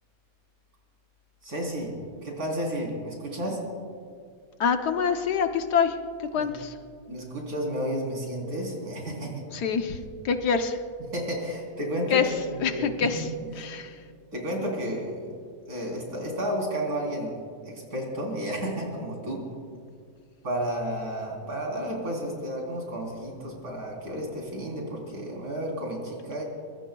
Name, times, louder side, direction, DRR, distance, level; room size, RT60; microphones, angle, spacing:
voice 1, 1.4-1.9 2.2-3.6 6.3-6.4 7.1-9.4 11.1-12.8 13.2-13.7 14.3-15.3 15.7-17.3 17.6-19.4 20.4-26.4, equal, 60° right, -1 dB, 4.2 m, -32 dB
voice 2, 4.6-6.0 6.3-6.7 9.5-10.0 10.2-10.8 12.1-12.2 12.6-13.2 13.6-13.9, left 6 dB, 70° left, 7 dB, 1.4 m, -25 dB
24.5 x 22.0 x 2.3 m, 2.2 s
omnidirectional pair, 1.8 m